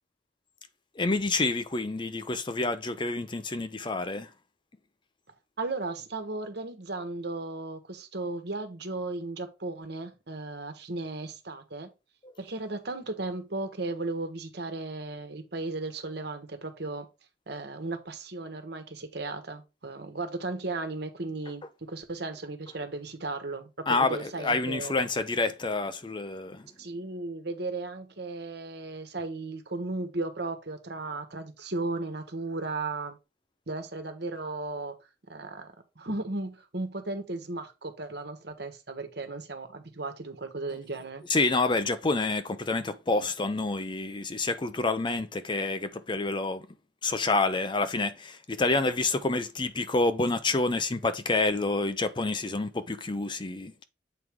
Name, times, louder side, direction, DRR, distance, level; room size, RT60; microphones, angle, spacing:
voice 1, 1.0-4.3 23.9-26.6 41.3-46.6 47.0-53.8, left 3 dB, 25° left, 0.6 m, -28 dB
voice 2, 5.6-11.9 12.4-17.1 17.5-25.0 26.8-33.2 33.7-34.9 35.3-41.2, right 2 dB, 60° right, 1.4 m, -35 dB
7.9 x 4.6 x 3.6 m
head